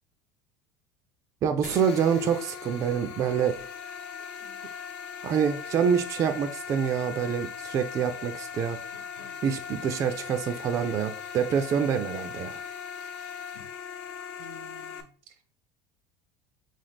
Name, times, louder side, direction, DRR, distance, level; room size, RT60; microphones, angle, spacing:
voice 1, 1.4-3.5 5.2-8.8 9.4-12.6, right 7 dB, 30° right, 7 dB, 0.3 m, -26 dB
sound 1, 1.6-15.0, left 7 dB, 70° left, 0.8 m, -39 dB
voice 2, 14.4-15.5, equal, 85° right, 8 dB, 0.8 m, -51 dB
4.0 x 3.2 x 3.9 m, 0.44 s
cardioid pair, 160°, 11 cm